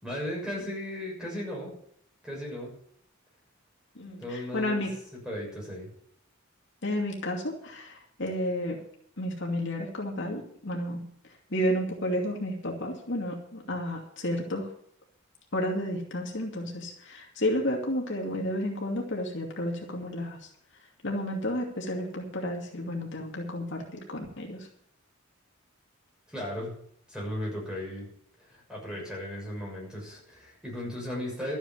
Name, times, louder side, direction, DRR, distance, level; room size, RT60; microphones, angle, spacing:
voice 1, 0.0-1.7 2.2-2.7 4.2-4.9 5.1-5.9 26.3-26.7 27.1-28.1 28.4-31.6, left 1 dB, 5° right, -3 dB, 6.4 m, -36 dB
voice 2, 4.0-4.9 6.8-8.8 9.2-11.0 11.5-14.7 15.5-20.4 21.0-24.6, left 1 dB, 60° left, 0 dB, 2.5 m, -31 dB
13.0 x 9.2 x 7.3 m, 0.65 s
head